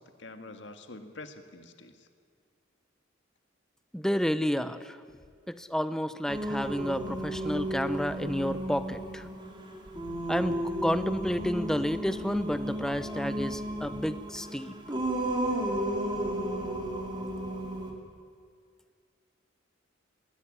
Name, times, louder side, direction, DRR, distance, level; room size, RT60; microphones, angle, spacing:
voice 1, 0.0-2.1, left 2 dB, 65° left, 7 dB, 1.8 m, -46 dB
voice 2, 3.9-5.0 5.5-9.3 10.3-14.7, equal, 5° left, 12 dB, 0.7 m, -30 dB
Singing, 6.3-17.9, right 1 dB, 25° right, 2.8 m, -33 dB
21.5 x 16.5 x 9.8 m, 2.1 s
head